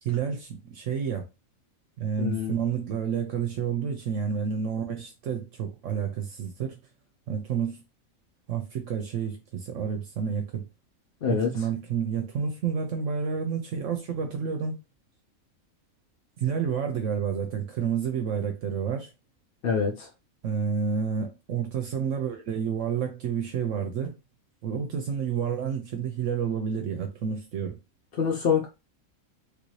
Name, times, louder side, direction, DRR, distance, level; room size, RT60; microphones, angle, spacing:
voice 1, 0.0-1.2 2.0-6.8 7.3-7.8 8.5-10.6 11.3-14.7 16.4-19.1 20.4-24.1 24.6-27.8, right 7 dB, 70° right, 0.9 m, -29 dB
voice 2, 2.2-2.5 11.2-11.5 19.6-20.1 28.2-28.7, left 6 dB, 50° left, 0.7 m, -25 dB
3.3 x 2.6 x 3.1 m
omnidirectional pair, 1.4 m